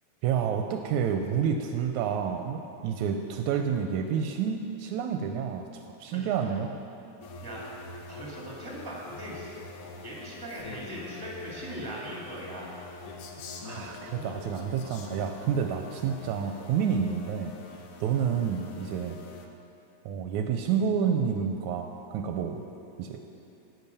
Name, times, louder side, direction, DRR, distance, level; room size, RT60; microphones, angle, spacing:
voice 1, 0.2-5.7 6.0-6.8 13.6-17.5 18.0-19.2 20.1-22.7 23.0-23.2, right 7 dB, 80° right, 5 dB, 1.9 m, -29 dB
voice 2, 6.0-6.3 7.4-7.7 8.1-12.9 14.0-14.3, right 1 dB, 10° right, -4 dB, 2.1 m, -40 dB
sound 1, 7.2-19.5, left 2 dB, 70° left, 1.3 m, -46 dB
Male speech man speaking, 10.5-11.8 13.1-15.5, left 4 dB, 90° left, 2.6 m, -45 dB
10.5 x 9.3 x 6.8 m, 2.9 s
omnidirectional pair, 3.5 m